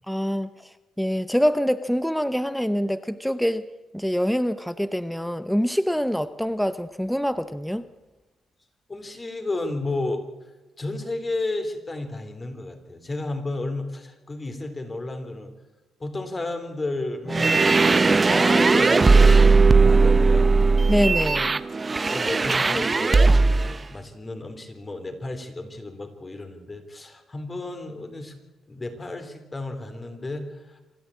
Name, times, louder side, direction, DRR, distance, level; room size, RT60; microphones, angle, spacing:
voice 1, 0.1-0.7 1.0-3.7 3.9-7.8 20.9-21.6, equal, ahead, 12 dB, 0.8 m, -25 dB
voice 2, 8.9-10.2 10.8-15.5 16.0-17.6 18.0-20.6 21.9-28.4 28.7-30.8, left 2 dB, 25° left, 7 dB, 3.5 m, -32 dB
sound 1, 17.3-23.7, right 4 dB, 30° right, 0.8 m, -18 dB
26.5 x 12.0 x 8.6 m, 1.1 s
cardioid pair, 90°, 0 cm